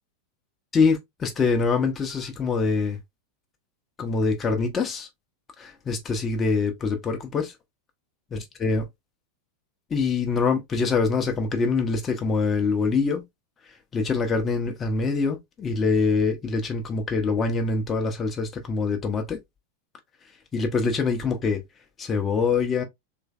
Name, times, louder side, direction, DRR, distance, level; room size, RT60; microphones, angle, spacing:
voice 1, 0.7-3.0 4.0-5.1 5.6-7.5 8.3-8.9 9.9-13.2 13.9-19.4 20.5-21.6 22.0-22.8, left 4 dB, 20° left, 0.5 m, -24 dB
3.2 x 3.1 x 2.3 m
figure-of-eight pair, 90°, 0 cm